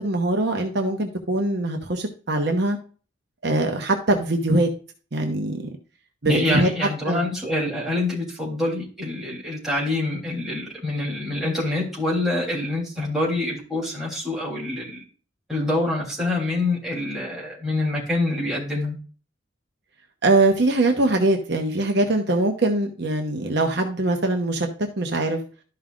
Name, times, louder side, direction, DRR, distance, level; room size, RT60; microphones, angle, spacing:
voice 1, 0.0-2.8 3.4-4.7 5.1-5.6 6.2-7.3 20.2-24.7 25.0-25.4, right 2 dB, 55° right, 3 dB, 1.0 m, -22 dB
voice 2, 6.3-15.0 15.5-19.0, left 2 dB, ahead, -6 dB, 3.3 m, -26 dB
12.5 x 5.5 x 2.5 m, 0.38 s
head